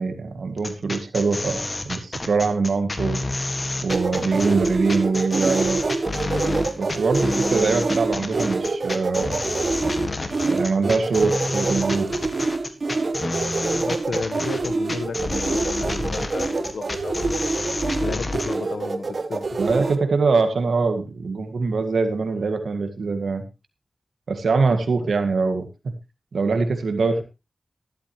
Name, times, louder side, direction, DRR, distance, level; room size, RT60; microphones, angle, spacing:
voice 1, 0.0-3.3 3.8-5.8 6.8-9.4 10.5-12.1 19.6-23.4 24.3-25.7 26.3-27.2, right 4 dB, 90° right, 7 dB, 1.9 m, -23 dB
sound 1, 0.6-18.6, left 2 dB, 40° left, 1.8 m, -29 dB
sound 2, 3.9-20.0, right 3 dB, 65° right, 1.2 m, -26 dB
voice 2, 4.3-4.8 13.7-19.5, left 4 dB, 85° left, 11 dB, 1.3 m, -33 dB
12.5 x 12.0 x 3.1 m, 0.27 s
cardioid pair, 60°, 0 cm